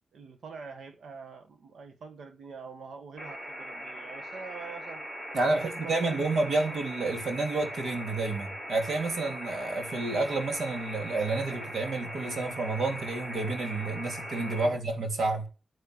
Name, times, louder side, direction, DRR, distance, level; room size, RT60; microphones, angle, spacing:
voice 1, 0.1-5.0 5.5-6.3 14.6-14.8, right 5 dB, 90° right, 1.5 m, -44 dB
sound 1, 3.2-14.7, equal, 50° right, 6.9 m, -40 dB
voice 2, 5.3-15.5, right 3 dB, 70° right, 3.3 m, -30 dB
10.5 x 10.0 x 8.0 m
wide cardioid pair, 175°, 0 cm